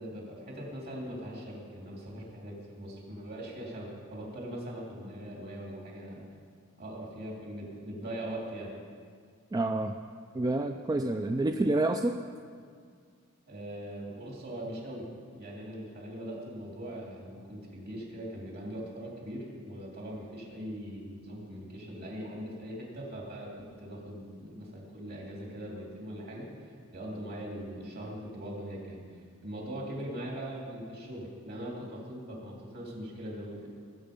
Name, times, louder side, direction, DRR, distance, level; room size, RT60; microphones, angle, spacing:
voice 1, 0.0-6.2 6.8-8.7 13.5-15.1 15.3-29.0 29.4-33.7, equal, 50° right, -2 dB, 3.3 m, -41 dB
voice 2, 9.5-10.0 10.3-12.2, right 2 dB, 15° right, 6 dB, 0.3 m, -28 dB
20.0 x 7.9 x 5.3 m, 2.1 s
head